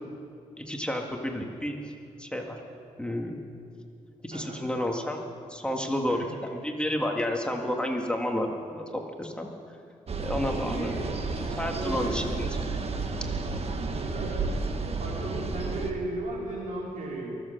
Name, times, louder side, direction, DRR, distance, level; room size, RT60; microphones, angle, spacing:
voice 1, 0.6-1.8 2.2-2.6 3.0-3.4 4.2-5.2 5.5-9.5 10.2-10.9 11.4-12.5 13.5-13.7, left 1 dB, 5° left, 2 dB, 1.9 m, -31 dB
voice 2, 4.3-4.7 6.1-6.2 10.4-11.2 11.7-12.2 13.8-14.5 15.0-17.3, right 2 dB, 80° right, -3 dB, 3.8 m, -36 dB
sound 1, 10.1-15.9, right 3 dB, 50° right, 1.4 m, -31 dB
23.0 x 7.9 x 6.7 m, 2.4 s
cardioid pair, 65°, 13 cm